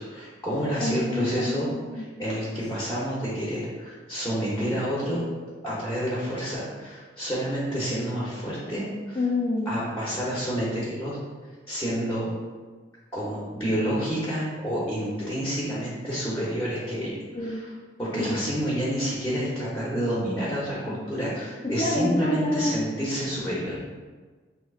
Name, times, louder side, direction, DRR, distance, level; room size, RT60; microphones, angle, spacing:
voice 1, 0.0-5.3 5.6-9.2 9.7-11.2 11.7-12.3 13.1-17.7 18.0-23.8, equal, 15° left, -7 dB, 0.8 m, -29 dB
voice 2, 0.8-2.0 9.2-9.7 17.3-17.6 18.2-18.4 18.7-18.8 21.6-22.7, left 2 dB, 30° left, -5 dB, 0.5 m, -27 dB
6.3 x 2.9 x 2.4 m, 1.4 s
head